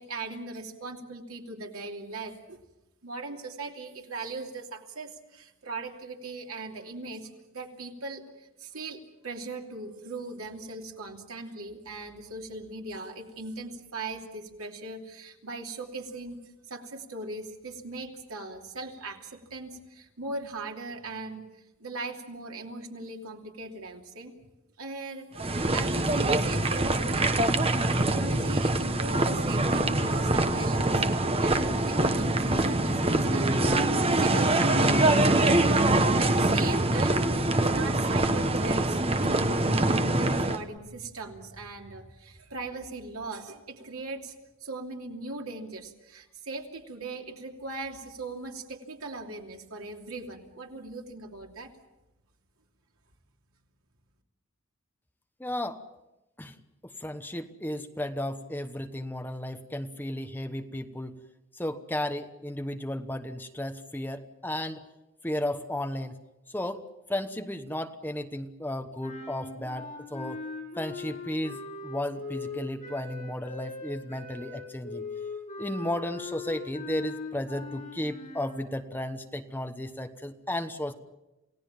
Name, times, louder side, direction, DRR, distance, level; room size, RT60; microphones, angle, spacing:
voice 1, 0.0-2.6 3.0-16.4 16.7-24.3 24.8-27.6 27.9-31.0 31.4-35.6 36.2-44.3 44.6-51.7, right 3 dB, 90° right, 2 dB, 3.0 m, -39 dB
sound 1, 25.4-40.6, right 2 dB, 25° right, 1.1 m, -24 dB
voice 2, 55.4-55.8 56.4-56.5 56.8-61.2 61.5-64.8 65.2-66.2 66.5-66.8 67.1-70.4 70.8-75.0 75.6-80.9, left 1 dB, 10° left, 7 dB, 1.0 m, -34 dB
Clarinet - C natural minor - bad-tempo-staccato, 69.0-78.6, left 3 dB, 30° left, 6.9 m, -40 dB
28.5 x 17.5 x 7.4 m, 1.0 s
head